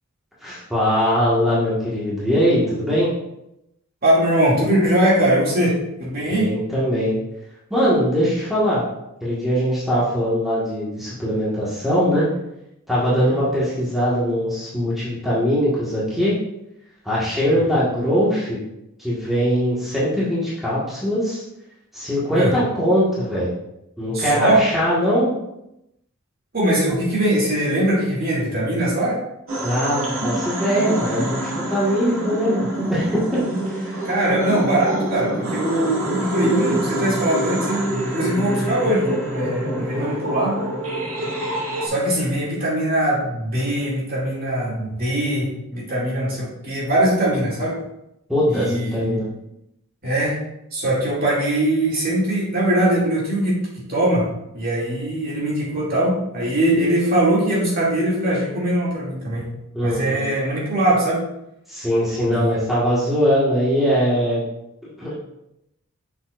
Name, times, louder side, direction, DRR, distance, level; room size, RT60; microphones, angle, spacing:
voice 1, 0.4-3.1 6.3-7.1 7.7-8.8 9.2-12.3 12.9-16.3 17.0-18.6 19.0-21.4 21.9-23.5 24.0-25.3 29.6-31.4 31.7-33.4 33.7-33.9 48.3-49.3 59.7-60.3 61.7-64.4 65.0-65.1, equal, ahead, -9 dB, 1.7 m, -21 dB
voice 2, 4.0-6.5 13.1-13.4 17.5-17.6 22.3-22.6 24.1-24.6 26.5-29.2 34.0-40.6 41.8-47.8 48.5-49.2 50.0-50.4 50.7-53.6 53.9-59.5 59.8-61.2 62.3-62.6, right 1 dB, 45° right, -6 dB, 2.5 m, -21 dB
sound 1, 29.5-41.9, right 1 dB, 70° right, 2.0 m, -26 dB
7.6 x 6.2 x 2.5 m, 0.83 s
head